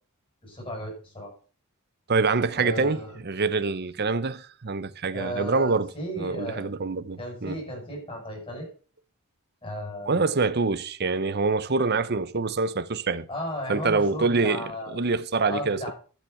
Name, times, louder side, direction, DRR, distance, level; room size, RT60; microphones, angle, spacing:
voice 1, 0.4-1.3 2.6-3.2 5.1-6.7 7.2-8.7 9.6-10.2 13.3-15.0 15.5-15.9, equal, 25° left, 7.7 m, -34 dB
voice 2, 2.1-5.9 6.2-7.6 10.1-13.3 13.7-15.9, right 4 dB, 50° right, 0.8 m, -25 dB
12.0 x 7.4 x 6.9 m
head